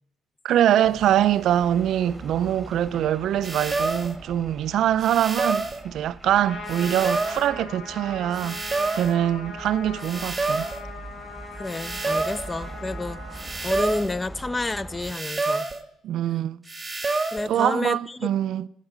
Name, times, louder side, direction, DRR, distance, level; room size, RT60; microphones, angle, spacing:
voice 1, 0.4-8.6 8.9-10.7 16.0-16.6 17.5-18.7, right 11 dB, 70° right, 0.3 m, -23 dB
sound 1, 0.8-15.1, right 1 dB, ahead, 1.7 m, -43 dB
sound 2, 3.4-4.2 5.0-5.8 6.7-7.5 8.3-9.2 10.0-10.8 11.7-12.5 13.3-14.2 15.0-15.8 16.7-17.5, right 3 dB, 15° right, 1.2 m, -28 dB
Trumpet, 6.2-13.5, left 2 dB, 75° left, 3.0 m, -39 dB
voice 2, 11.5-15.7 17.3-18.3, left 2 dB, 20° left, 0.4 m, -30 dB
12.5 x 8.9 x 5.0 m
cardioid pair, 100°, 0 cm